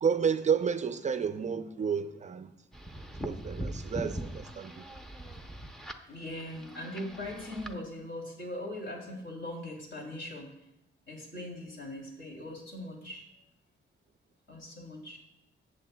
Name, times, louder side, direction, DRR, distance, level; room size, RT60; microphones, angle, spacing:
voice 1, 0.0-2.5 3.2-4.8, right 6 dB, 35° right, 0.4 m, -30 dB
sound 1, 2.7-7.7, equal, ahead, 0.6 m, -41 dB
voice 2, 6.1-10.5 11.1-13.2 14.5-15.2, left 1 dB, 60° left, 3.0 m, -40 dB
14.0 x 8.2 x 2.2 m
cardioid pair, 135°, 21 cm